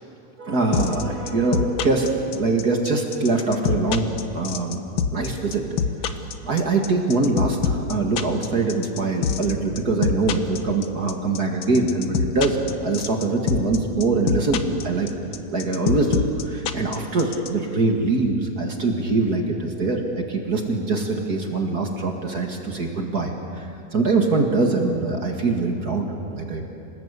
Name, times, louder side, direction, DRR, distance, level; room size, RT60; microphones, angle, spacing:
voice 1, 0.4-4.8 5.1-5.6 6.1-6.2 6.4-15.1 15.5-26.7, right 3 dB, 35° right, 2 dB, 2.0 m, -23 dB
sound 1, 0.7-17.5, left 7 dB, 75° left, 1.1 m, -24 dB
27.0 x 19.5 x 8.2 m, 2.5 s
omnidirectional pair, 3.7 m